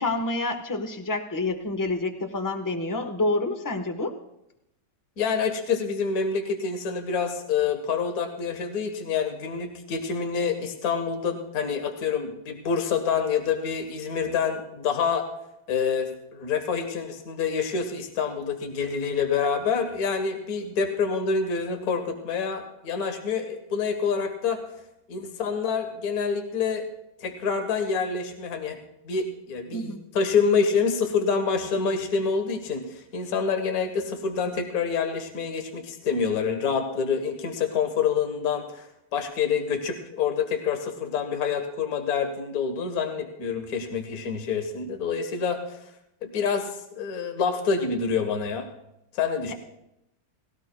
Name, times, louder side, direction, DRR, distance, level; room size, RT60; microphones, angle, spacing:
voice 1, 0.0-4.1 29.7-30.0 49.5-49.6, left 2 dB, 15° left, 6 dB, 0.8 m, -28 dB
voice 2, 5.2-15.3 15.7-24.6 25.1-26.8 27.2-28.8 29.1-45.8 46.2-48.7 49.1-49.5, left 6 dB, 55° left, 6 dB, 1.6 m, -27 dB
19.0 x 17.0 x 2.2 m, 0.84 s
omnidirectional pair, 1.9 m